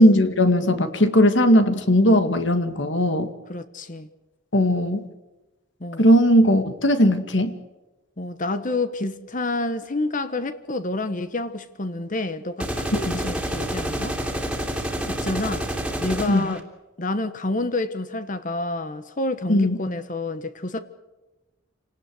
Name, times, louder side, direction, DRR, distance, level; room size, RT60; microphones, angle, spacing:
voice 1, 0.0-3.3 4.5-5.1 6.0-7.6 12.9-13.2 16.3-16.5 19.5-19.8, equal, 65° left, 2.1 m, -18 dB
voice 2, 3.5-4.1 5.8-6.0 8.2-14.2 15.2-16.6 17.0-20.8, left 2 dB, 40° left, 1.2 m, -28 dB
sound 1, 12.6-16.6, equal, 5° right, 2.9 m, -28 dB
27.5 x 19.0 x 7.9 m
head